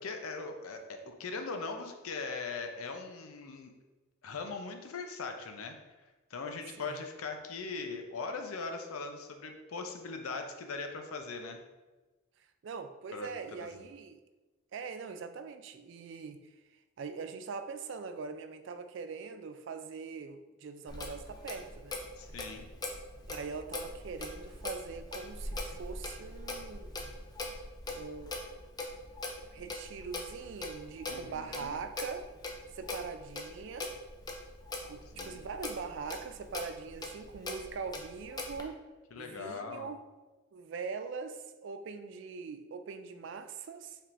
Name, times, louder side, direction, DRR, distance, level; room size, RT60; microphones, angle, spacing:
voice 1, 0.0-3.7 4.2-5.8 6.3-11.6 13.1-13.9 22.2-22.7 31.1-31.8 35.2-35.4 39.1-39.9, left 4 dB, 85° left, 5 dB, 0.6 m, -40 dB
voice 2, 12.6-14.2 14.7-16.5 17.0-22.0 23.3-27.1 27.9-28.4 29.5-32.2 32.7-33.9 34.8-38.8 39.2-40.0 40.5-44.0, right 5 dB, 60° right, 9 dB, 0.3 m, -42 dB
Clock, 20.9-38.6, left 2 dB, 20° left, 0.4 m, -42 dB
5.3 x 3.6 x 2.5 m, 1.2 s
head